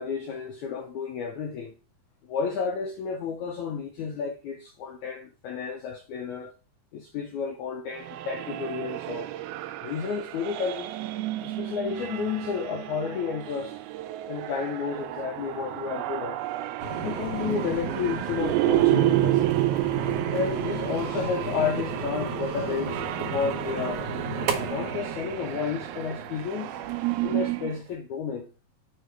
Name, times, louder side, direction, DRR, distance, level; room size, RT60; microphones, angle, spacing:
voice 1, 0.0-1.7 2.2-6.5 6.9-9.3 9.8-10.9 11.4-13.8 14.3-16.4 17.0-19.6 20.3-24.1 24.7-28.5, left 6 dB, 75° left, 1.7 m, -31 dB
sound 1, 8.0-27.8, right 16 dB, 85° right, 2.4 m, -30 dB
sound 2, 16.8-27.9, right 4 dB, 65° right, 2.1 m, -34 dB
6.6 x 3.7 x 4.5 m
omnidirectional pair, 4.4 m